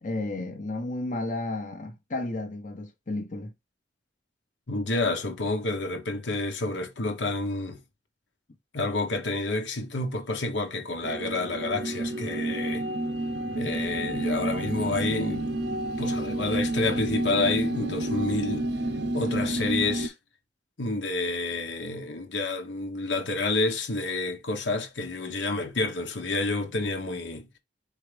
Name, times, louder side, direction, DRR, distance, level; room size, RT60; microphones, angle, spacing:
voice 1, 0.0-3.5, left 2 dB, 45° left, 0.8 m, -32 dB
voice 2, 4.7-7.8 8.7-12.8 13.6-15.5 16.0-18.7 19.1-20.1 20.8-27.5, left 2 dB, 80° left, 1.1 m, -29 dB
sound 1, 11.0-20.1, right 1 dB, 65° right, 0.7 m, -30 dB
4.6 x 3.5 x 3.3 m
head